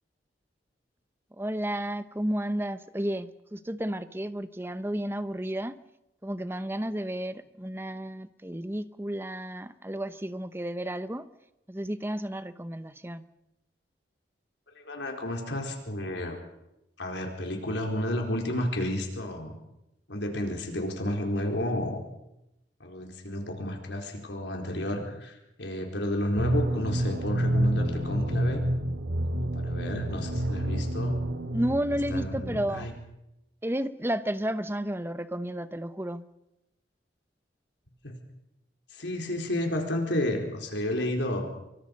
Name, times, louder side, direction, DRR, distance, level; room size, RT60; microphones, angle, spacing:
voice 1, 1.4-5.8 6.2-11.3 11.7-13.2 31.5-32.9 33.6-36.3, right 1 dB, 10° right, 12 dB, 0.9 m, -32 dB
voice 2, 14.7-16.4 17.0-19.6 20.1-22.0 22.8-28.6 29.3-31.2 32.1-32.9 38.0-38.2 38.9-41.5, left 1 dB, 75° left, 2 dB, 4.4 m, -31 dB
sound 1, 26.4-33.0, right 1 dB, 90° right, 2.2 m, -29 dB
26.0 x 24.0 x 5.4 m, 0.88 s
head